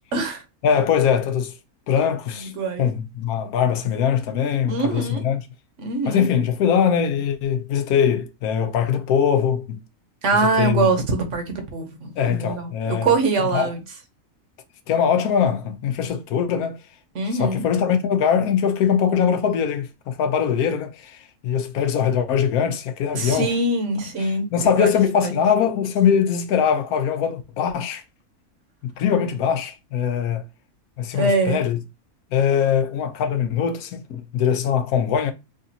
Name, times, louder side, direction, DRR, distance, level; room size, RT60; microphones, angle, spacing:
voice 1, 0.1-0.4 2.6-2.9 4.7-5.2 5.8-6.2 10.2-13.8 17.1-17.6 23.1-24.5 24.8-24.9 25.2-25.3 31.1-31.6, right 3 dB, 60° right, 1.1 m, -23 dB
voice 2, 0.6-1.5 1.9-2.5 2.8-5.4 6.1-9.8 10.3-10.9 12.2-13.1 13.4-13.7 14.9-16.8 17.3-23.5 24.2-28.0 28.8-30.4 31.0-31.8 32.3-35.3, left 8 dB, 85° left, 1.1 m, -22 dB
5.0 x 2.4 x 2.7 m
omnidirectional pair, 1.5 m